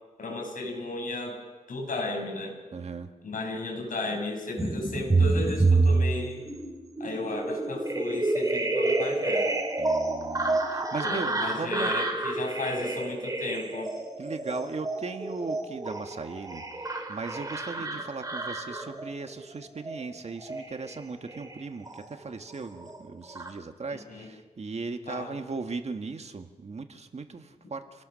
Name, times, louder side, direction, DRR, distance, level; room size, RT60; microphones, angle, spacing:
voice 1, 0.2-1.4 1.7-2.6 3.2-6.4 7.0-9.5 11.0-13.9 24.1-24.3 25.1-25.4, left 2 dB, 75° left, 2 dB, 6.3 m, -34 dB
voice 2, 2.7-3.1 9.8-11.9 14.2-28.0, right 4 dB, 50° right, 7 dB, 1.7 m, -38 dB
sound 1, 4.6-22.3 22.6-23.5, right 3 dB, 25° right, 3.6 m, -29 dB
28.5 x 18.0 x 6.5 m, 1.2 s
wide cardioid pair, 105°, 14 cm